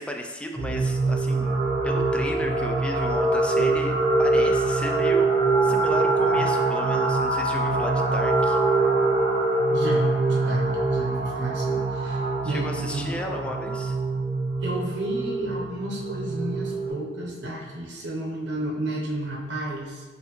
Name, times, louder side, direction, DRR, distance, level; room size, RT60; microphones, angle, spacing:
voice 1, 0.0-1.6 1.8-5.3 5.6-8.6 12.4-14.0, left 1 dB, 5° left, 2 dB, 0.3 m, -34 dB
sound 1, 0.5-16.9, right 2 dB, 30° right, 1.1 m, -24 dB
voice 2, 9.7-13.5 14.6-20.0, right 1 dB, 80° right, -2 dB, 0.7 m, -32 dB
5.4 x 2.6 x 3.0 m, 1.3 s
head